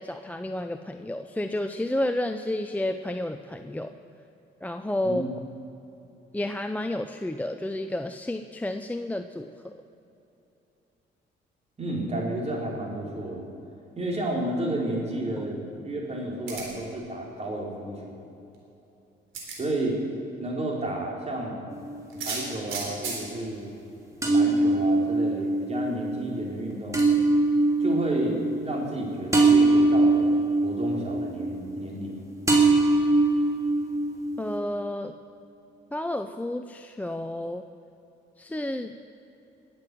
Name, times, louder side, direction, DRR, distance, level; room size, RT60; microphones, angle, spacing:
voice 1, 0.0-3.9 4.6-5.2 6.3-9.8 34.4-35.2 35.9-37.6 38.4-38.9, left 1 dB, 10° left, 7 dB, 0.6 m, -31 dB
voice 2, 11.8-13.5 14.0-18.2 19.6-20.0 20.4-21.6 22.2-23.7 24.2-27.0 27.8-30.4 30.6-32.2, right 1 dB, 35° right, -2 dB, 4.3 m, -31 dB
sound 1, 16.5-16.9 18.5-18.6 19.3-19.6 22.1-23.2 24.3-24.4 24.7-24.8 27.0-27.1, right 4 dB, 85° right, 3.6 m, -34 dB
sound 2, 21.7-22.6 24.2-32.1 32.5-34.6, right 2 dB, 15° right, 3.1 m, -22 dB
20.5 x 7.8 x 7.7 m, 2.9 s
cardioid pair, 90°, 20 cm